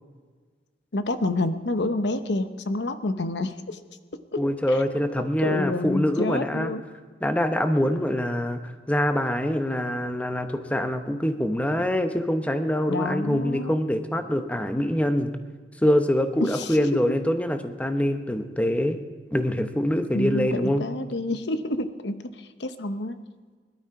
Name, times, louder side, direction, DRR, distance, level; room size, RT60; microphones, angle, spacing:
voice 1, 0.9-3.8 4.3-4.8 5.4-6.8 12.9-13.8 16.4-17.1 20.1-23.2, left 2 dB, 80° left, 10 dB, 0.8 m, -28 dB
voice 2, 4.3-6.7 7.2-15.3 15.8-19.0 19.3-20.8, equal, 10° left, 7 dB, 0.9 m, -24 dB
21.5 x 12.0 x 4.8 m, 1.5 s
head